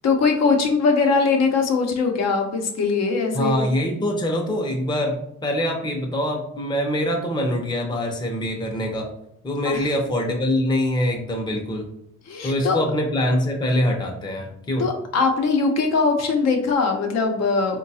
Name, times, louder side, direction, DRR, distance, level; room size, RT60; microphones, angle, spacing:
voice 1, 0.0-3.6 9.6-9.9 12.3-12.8 14.8-17.8, left 4 dB, 60° left, 3 dB, 0.7 m, -21 dB
voice 2, 3.3-9.1 9.4-11.9 12.4-14.8, left 1 dB, 15° left, 1 dB, 0.6 m, -24 dB
3.8 x 2.2 x 2.7 m, 0.75 s
cardioid pair, 90°, 30 cm